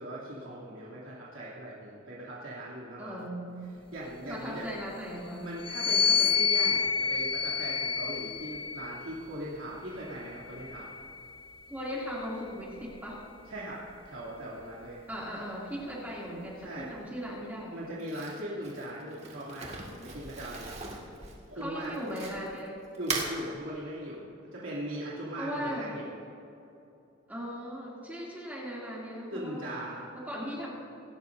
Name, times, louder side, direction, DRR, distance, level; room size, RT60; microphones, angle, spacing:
voice 1, 0.0-3.2 3.9-4.7 5.4-10.9 13.5-15.0 16.6-16.9 17.7-20.7 21.5-21.9 23.0-24.2 24.5-26.1 29.3-30.1, right 1 dB, 80° right, -7 dB, 2.9 m, -39 dB
voice 2, 3.0-3.6 4.3-5.5 11.7-13.2 15.1-17.9 21.5-22.7 25.3-25.9 27.3-29.7 30.1-30.7, equal, 10° right, -6 dB, 2.7 m, -38 dB
sound 1, 5.6-9.2 10.0-11.6, left 6 dB, 25° left, 0.4 m, -29 dB
Crumpling crinkling, 18.0-22.6 22.9-23.3, right 3 dB, 30° right, 2.0 m, -38 dB
26.5 x 13.0 x 2.7 m, 2.8 s
head